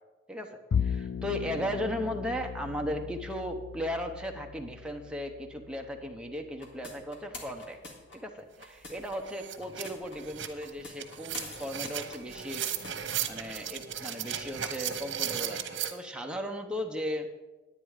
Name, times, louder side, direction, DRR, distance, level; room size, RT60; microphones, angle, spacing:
Bowed string instrument, 0.7-7.1, left 7 dB, 90° left, 0.4 m, -37 dB
voice 1, 0.8-7.8 8.1-12.7 13.3-17.3, equal, 5° right, 2 dB, 0.9 m, -36 dB
sound 1, 6.6-9.2 9.6-10.2 10.6-13.2, left 2 dB, 70° left, 2.0 m, -45 dB
sound 2, 8.6-8.7 9.0-15.9, right 9 dB, 85° right, 1.1 m, -36 dB
10.0 x 9.6 x 4.9 m, 1.2 s
head